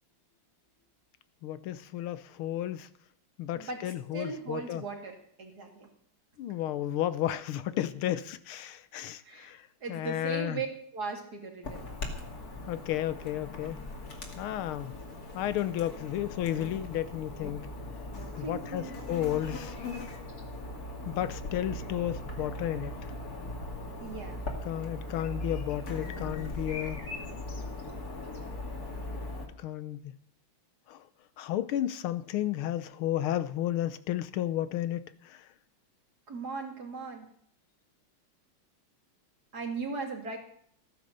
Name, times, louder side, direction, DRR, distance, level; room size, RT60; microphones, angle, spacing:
voice 1, 1.4-2.9 3.4-4.8 6.4-10.6 12.7-13.8 14.4-14.9 15.3-17.7 18.4-19.8 21.0-23.0 24.6-27.0 29.6-30.1 30.9-31.0 31.4-35.4, left 12 dB, 85° left, 14 dB, 1.7 m, -33 dB
voice 2, 4.1-5.9 9.2-9.5 9.8-10.7 10.9-11.9 18.4-19.3 24.0-24.4 36.3-37.3 39.5-40.4, right 4 dB, 50° right, 2 dB, 3.1 m, -38 dB
Chirp tweet / Buzz, 11.6-29.5, left 2 dB, 45° left, 2.8 m, -39 dB
15.5 x 9.8 x 6.7 m, 0.63 s
omnidirectional pair, 2.3 m